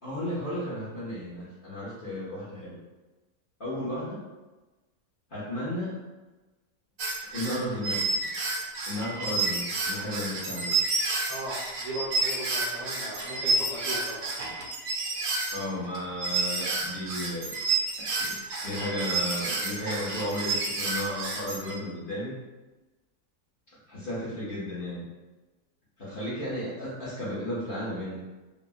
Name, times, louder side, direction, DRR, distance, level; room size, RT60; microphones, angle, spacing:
voice 1, 0.0-2.8 3.6-4.3 5.3-6.0 7.3-8.1 8.8-10.8 15.5-17.6 18.2-18.3 18.6-22.3 23.9-25.1 26.0-28.2, left 1 dB, 45° left, -10 dB, 0.8 m, -34 dB
sound 1, 7.0-21.8, right 3 dB, 75° right, 0.9 m, -30 dB
voice 2, 11.3-14.3, right 1 dB, 35° right, -11 dB, 0.7 m, -37 dB
3.3 x 2.1 x 2.5 m, 1.1 s
omnidirectional pair, 1.6 m